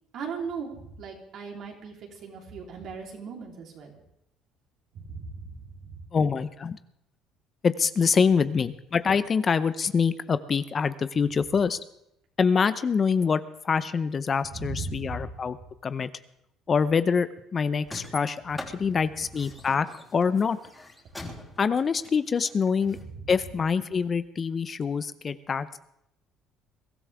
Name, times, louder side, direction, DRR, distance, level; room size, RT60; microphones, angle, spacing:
voice 1, 0.1-4.0 4.9-5.5 5.8-5.9 14.5-15.3 23.1-23.2, right 4 dB, 60° right, 0 dB, 3.6 m, -37 dB
voice 2, 6.1-6.8 7.6-11.8 12.4-15.6 15.8-16.1 16.7-19.9 20.1-20.6 21.6-23.0 23.3-25.8, left 5 dB, 35° left, 13 dB, 0.7 m, -25 dB
sound 1, 17.8-23.0, left 1 dB, 10° left, 3.5 m, -43 dB
22.5 x 13.5 x 3.5 m, 0.78 s
supercardioid pair, 85°, 0 cm